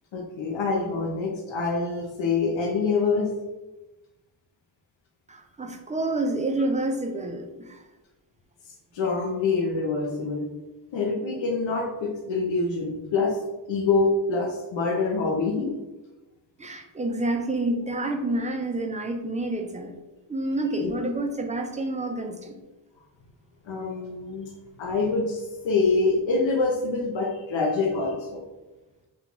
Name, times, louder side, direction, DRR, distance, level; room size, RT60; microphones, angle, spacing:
voice 1, 0.1-3.3 8.9-10.5 10.9-13.4 13.7-15.8 20.8-20.9 23.7-24.5 24.8-28.4, left 3 dB, 80° left, 1 dB, 0.6 m, -25 dB
voice 2, 5.3-7.8 16.6-20.0 20.3-22.6, right 2 dB, 20° right, 3 dB, 0.3 m, -28 dB
2.9 x 2.3 x 3.8 m, 1.1 s
wide cardioid pair, 80°, 46 cm